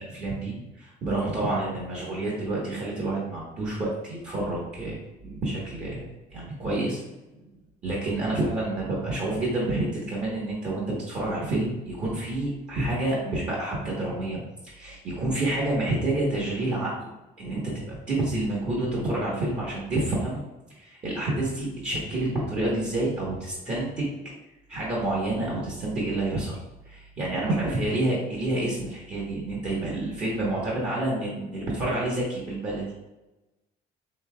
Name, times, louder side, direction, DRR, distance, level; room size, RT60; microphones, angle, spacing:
voice 1, 0.0-5.0 5.3-6.0 6.3-7.0 7.8-17.1 17.4-20.4 20.8-24.2 24.7-26.6 26.9-32.9, right 2 dB, 45° right, -5 dB, 1.3 m, -28 dB
5.5 x 3.3 x 2.3 m, 1.0 s
cardioid pair, 110°, 17 cm